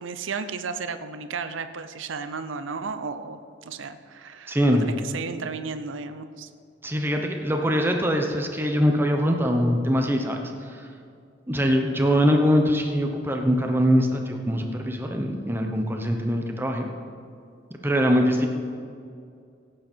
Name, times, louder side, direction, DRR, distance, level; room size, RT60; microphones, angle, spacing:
voice 1, 0.0-6.5, right 5 dB, 85° right, 10 dB, 0.7 m, -34 dB
voice 2, 4.5-4.9 6.8-10.9 11.5-16.9 17.8-18.5, equal, 10° right, 3 dB, 0.9 m, -23 dB
17.5 x 8.8 x 4.5 m, 2.4 s
head